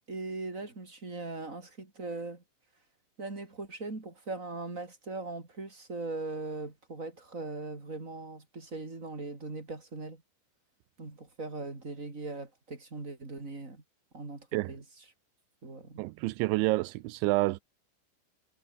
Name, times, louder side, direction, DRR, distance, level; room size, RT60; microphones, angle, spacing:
voice 1, 0.1-2.4 3.2-10.2 11.0-13.8 14.1-14.8 15.6-16.0, right 3 dB, 20° right, 3.8 m, -40 dB
voice 2, 16.0-17.6, right 20 dB, 90° right, 3.1 m, -28 dB
omnidirectional pair, 5.2 m